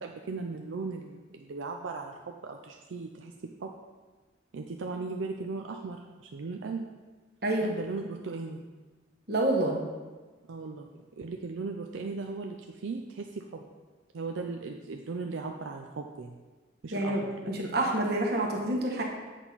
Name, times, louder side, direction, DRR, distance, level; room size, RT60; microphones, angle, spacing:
voice 1, 0.0-3.7 4.5-6.8 7.6-8.6 10.5-13.7 14.1-16.4 16.8-17.5, right 4 dB, 80° right, 3 dB, 0.5 m, -37 dB
voice 2, 7.4-7.7 9.3-9.8 16.9-17.2 17.5-19.0, right 1 dB, 55° right, 0 dB, 1.3 m, -27 dB
7.9 x 5.9 x 4.0 m, 1.3 s
head